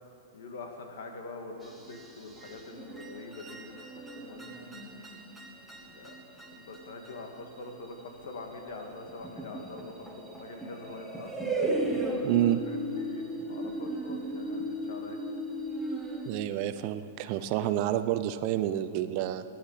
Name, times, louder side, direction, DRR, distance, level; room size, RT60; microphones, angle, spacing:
voice 1, 0.3-3.9 4.1-4.6 5.7-11.5 12.4-15.2, left 3 dB, 75° left, 3 dB, 2.1 m, -44 dB
sound 1, 1.6-16.5, right 1 dB, ahead, 1.5 m, -36 dB
voice 2, 12.2-12.6 16.2-19.4, right 12 dB, 45° right, 11 dB, 0.7 m, -28 dB
17.0 x 10.5 x 5.8 m, 2.8 s
hypercardioid pair, 140°, 0 cm